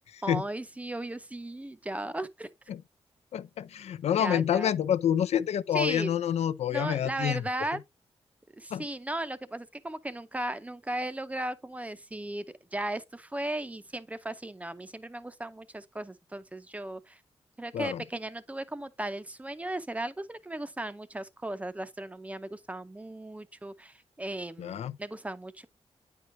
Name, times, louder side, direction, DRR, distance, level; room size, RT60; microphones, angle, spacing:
voice 1, 0.2-2.5 4.2-4.7 5.7-6.1 6.7-7.8 8.6-12.5 12.7-17.2 17.6-25.7, right 1 dB, 15° right, 0.5 m, -36 dB
voice 2, 3.3-7.4 8.7-8.8 17.7-18.0 24.6-25.0, left 9 dB, 80° left, 0.4 m, -28 dB
9.2 x 4.6 x 2.6 m
wide cardioid pair, 110°, 11 cm